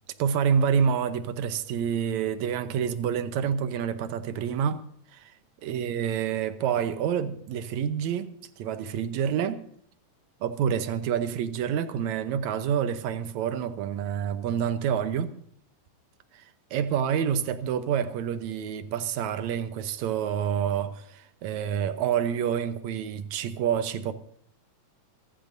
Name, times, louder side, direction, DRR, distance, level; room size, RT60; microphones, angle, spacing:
voice 1, 0.2-4.8 5.1-5.3 5.6-8.3 8.6-9.6 10.4-15.3 16.3-16.5 16.7-24.1, right 8 dB, 70° right, 1.9 m, -28 dB
24.0 x 14.0 x 2.7 m
omnidirectional pair, 4.0 m